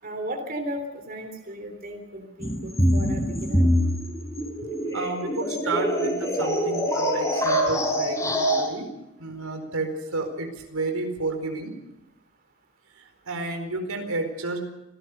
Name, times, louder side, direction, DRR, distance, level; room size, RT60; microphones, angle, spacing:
voice 1, 0.0-3.6, right 1 dB, 40° right, 5 dB, 3.5 m, -35 dB
sound 1, 2.4-8.7, equal, 15° left, 4.1 m, -24 dB
voice 2, 4.6-8.9 9.2-11.7 13.0-14.7, right 3 dB, 85° right, 5 dB, 4.5 m, -31 dB
26.0 x 17.5 x 6.7 m, 0.92 s
head